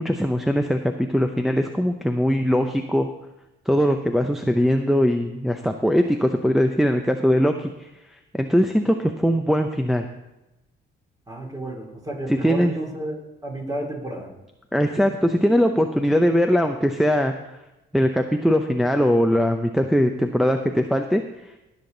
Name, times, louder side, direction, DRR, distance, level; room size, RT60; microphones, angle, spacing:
voice 1, 0.0-3.1 3.7-7.9 8.3-10.1 12.3-12.7 14.7-17.3 17.9-21.2, equal, ahead, 5 dB, 0.7 m, -21 dB
voice 2, 11.3-14.3, right 1 dB, 20° right, 0 dB, 3.1 m, -32 dB
17.5 x 7.3 x 3.9 m, 0.97 s
cardioid pair, 90°, 20 cm